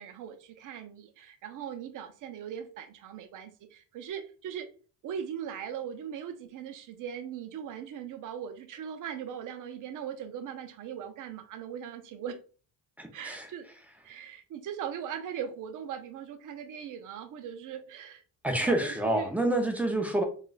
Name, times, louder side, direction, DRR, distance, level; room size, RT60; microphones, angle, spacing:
voice 1, 0.0-4.7 5.0-12.4 13.1-13.7 14.0-18.2 18.6-19.3, right 8 dB, 50° right, 0.5 m, -39 dB
voice 2, 13.0-13.5 18.4-20.2, right 1 dB, 5° right, 0.4 m, -28 dB
2.3 x 2.2 x 3.9 m
cardioid pair, 135°, 41 cm